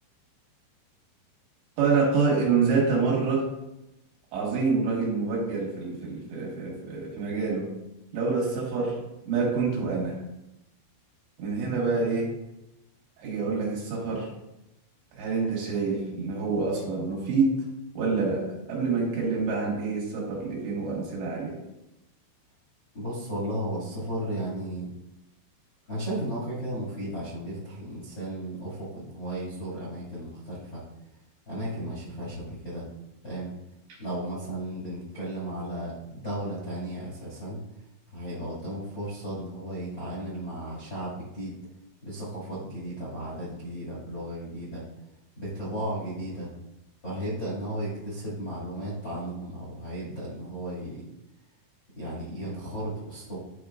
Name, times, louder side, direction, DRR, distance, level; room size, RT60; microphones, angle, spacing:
voice 1, 1.8-3.5 4.3-7.7 8.1-9.0 9.3-10.2 11.4-12.3 13.2-14.3 15.1-17.6 18.0-21.6, right 4 dB, 65° right, -4 dB, 3.7 m, -27 dB
voice 2, 22.9-24.9 25.9-30.8 31.4-32.8 33.2-33.5 34.0-37.6 38.1-41.5 42.0-44.8 45.3-46.5 47.0-51.0 51.9-53.4, right 1 dB, 40° left, -7 dB, 1.7 m, -34 dB
12.5 x 5.0 x 2.5 m, 0.91 s
omnidirectional pair, 5.8 m